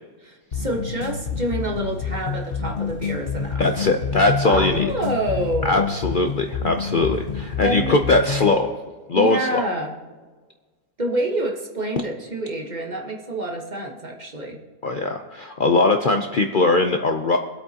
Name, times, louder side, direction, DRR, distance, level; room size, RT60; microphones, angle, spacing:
voice 1, 0.2-3.6 4.4-5.9 7.6-7.9 9.1-9.9 11.0-14.6, right 1 dB, 30° right, 0 dB, 1.3 m, -27 dB
sound 1, 0.5-8.5, left 5 dB, 45° left, 0.8 m, -28 dB
voice 2, 3.6-4.9 5.6-8.7 9.1-9.6 14.8-17.4, left 3 dB, 85° left, 4 dB, 0.4 m, -20 dB
23.5 x 8.4 x 2.8 m, 1.4 s
omnidirectional pair, 1.8 m